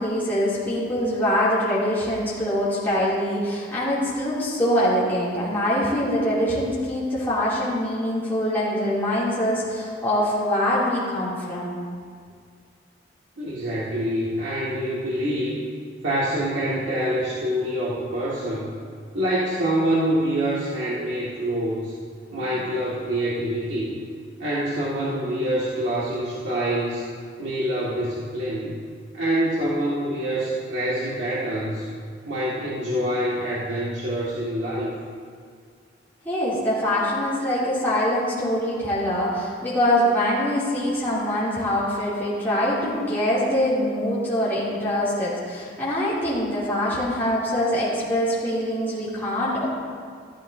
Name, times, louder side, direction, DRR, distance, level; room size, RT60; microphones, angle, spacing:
voice 1, 0.0-11.8 36.2-49.6, equal, 10° left, -11 dB, 2.8 m, -24 dB
voice 2, 13.4-15.6 16.0-18.7 19.1-21.9 22.3-24.0 24.4-27.1 27.4-28.8 29.1-31.9 32.3-34.9, right 1 dB, 85° right, -8 dB, 1.9 m, -26 dB
14.5 x 12.5 x 2.7 m, 2.1 s
head